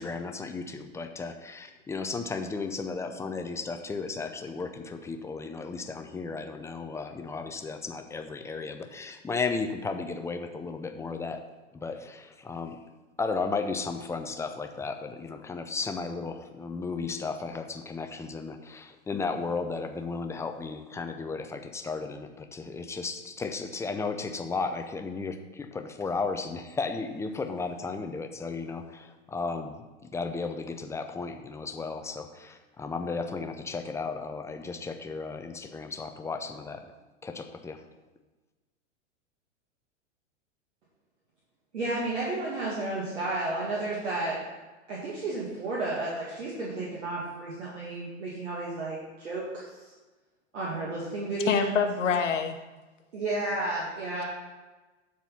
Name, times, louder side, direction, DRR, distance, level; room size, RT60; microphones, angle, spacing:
voice 1, 0.0-11.4 11.7-12.8 13.2-29.8 30.1-36.8 37.2-37.8, left 4 dB, 10° left, 6 dB, 0.4 m, -34 dB
voice 2, 41.7-44.4 44.9-49.8 50.5-51.7 53.1-54.2, right 2 dB, 75° right, -6 dB, 2.2 m, -32 dB
voice 3, 51.5-52.6, left 6 dB, 80° left, 6 dB, 0.9 m, -26 dB
9.7 x 4.2 x 5.7 m, 1.2 s
hypercardioid pair, 105°, 36 cm